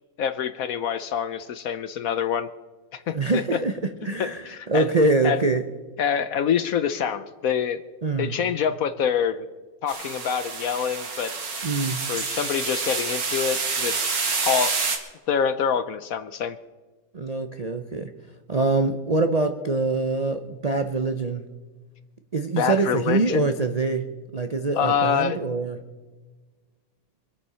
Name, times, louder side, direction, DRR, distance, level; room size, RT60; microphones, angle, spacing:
voice 1, 0.2-2.5 2.9-3.1 3.5-3.6 4.4-4.8 5.2-5.4 6.0-7.8 8.2-9.5 9.8-11.3 12.1-14.0 14.4-14.7 15.3-16.6 22.6-23.4 24.8-25.4, left 7 dB, 65° left, 12 dB, 1.0 m, -25 dB
voice 2, 3.1-3.7 4.0-5.6 8.0-8.3 11.6-12.0 17.1-18.1 18.5-21.4 22.3-24.0 24.3-25.8, right 3 dB, 50° right, 7 dB, 0.4 m, -24 dB
sound 1, 9.9-15.0, right 4 dB, 85° right, 2.6 m, -28 dB
25.0 x 8.7 x 5.6 m, 1.3 s
omnidirectional pair, 1.9 m